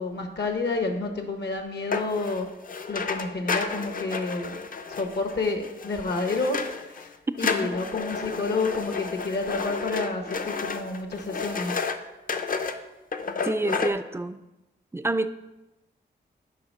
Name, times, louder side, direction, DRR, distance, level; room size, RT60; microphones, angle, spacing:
voice 1, 0.0-2.5 2.9-4.6 5.0-6.6 6.9-7.1 7.4-11.7, left 3 dB, 65° left, 5 dB, 1.0 m, -29 dB
sound 1, 1.9-7.1 7.4-12.0 12.3-12.8 13.1-13.9, left 5 dB, 50° left, 0.5 m, -31 dB
voice 2, 7.4-7.7 13.4-14.4 14.9-15.3, right 2 dB, 15° right, 12 dB, 0.3 m, -28 dB
7.7 x 4.9 x 5.4 m, 1.0 s
wide cardioid pair, 125°, 19 cm